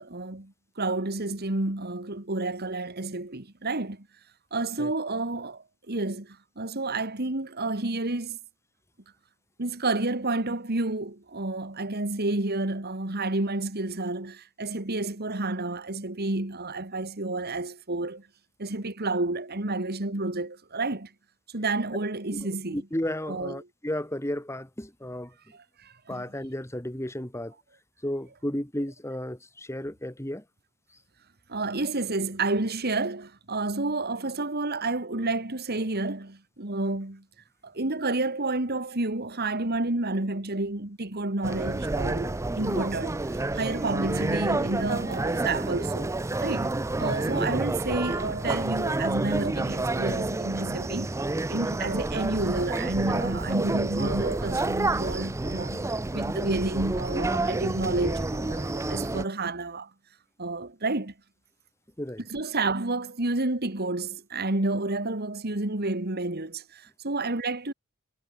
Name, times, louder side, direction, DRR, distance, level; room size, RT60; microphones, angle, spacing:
voice 1, 0.0-4.1 4.5-8.4 9.6-18.2 18.6-21.1 21.5-22.8 23.3-23.6 25.5-26.2 31.5-37.2 37.6-43.2 43.5-46.1 46.4-46.7 47.0-51.2 51.5-59.9 60.4-61.1 62.3-67.7, right 2 dB, 50° right, 2.3 m, -30 dB
voice 2, 22.7-25.3 26.1-27.5 28.0-30.4 56.1-56.2 62.0-62.2, left 1 dB, 15° left, 3.0 m, -33 dB
sound 1, 41.4-59.2, right 2 dB, 15° right, 0.4 m, -29 dB
head